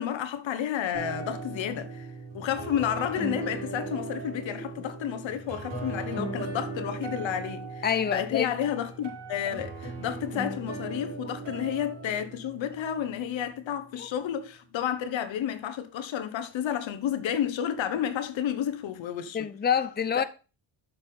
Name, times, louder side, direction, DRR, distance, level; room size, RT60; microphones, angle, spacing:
voice 1, 0.0-2.1 2.3-19.5 20.1-20.2, left 9 dB, 80° left, 1.1 m, -31 dB
sound 1, 0.9-13.4, right 3 dB, 70° right, 4.8 m, -38 dB
voice 2, 7.8-8.5 11.3-11.4 14.0-14.1 19.3-20.2, left 7 dB, 20° left, 0.7 m, -27 dB
7.0 x 5.6 x 5.4 m
cardioid pair, 80°, 45 cm